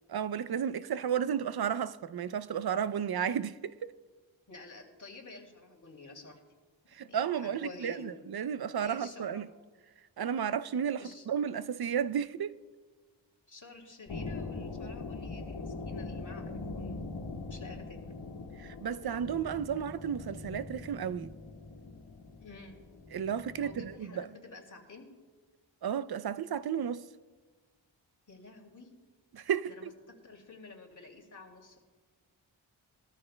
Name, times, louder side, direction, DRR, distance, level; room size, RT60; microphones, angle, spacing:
voice 1, 0.1-3.9 6.9-9.5 10.2-12.5 18.6-21.3 23.1-24.3 25.8-27.1 29.3-29.9, right 8 dB, 55° right, 0.5 m, -33 dB
voice 2, 4.5-6.4 7.0-8.2 8.8-9.4 11.0-11.3 13.5-16.4 16.7-17.1 17.5-18.0 22.4-22.8 23.6-25.1 28.3-28.9 29.7-29.9 30.2-31.8, left 3 dB, 40° left, 2.5 m, -50 dB
sound 1, 14.1-24.0, left 3 dB, 85° left, 1.7 m, -42 dB
21.0 x 13.5 x 2.2 m
wide cardioid pair, 65°, 47 cm